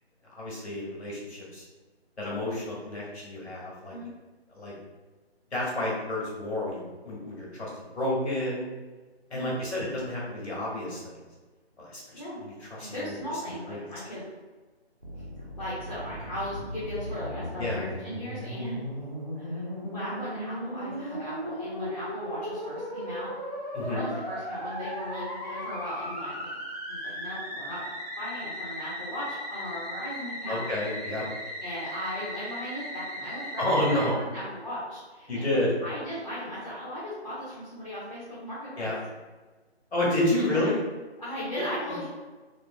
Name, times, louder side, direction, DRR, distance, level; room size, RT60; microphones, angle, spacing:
voice 1, 0.3-1.6 2.2-4.0 4.5-4.7 5.5-8.7 9.3-11.2 11.8-12.0 12.4-13.2 13.7-13.8 17.6-17.8 23.7-24.0 30.5-31.3 33.6-34.1 35.3-35.7 38.8-39.0 39.9-40.8 41.6-41.7, left 1 dB, 75° left, -5 dB, 1.4 m, -30 dB
voice 2, 12.8-14.3 15.6-18.8 19.4-23.3 23.9-26.6 26.9-27.9 28.2-30.6 31.6-35.5 35.8-38.9 40.3-40.7 41.2-42.1, left 1 dB, 35° left, -10 dB, 0.7 m, -37 dB
Musical instrument, 15.0-34.1, equal, 35° right, 0.5 m, -37 dB
3.0 x 2.5 x 2.2 m, 1.3 s
figure-of-eight pair, 170°, 33 cm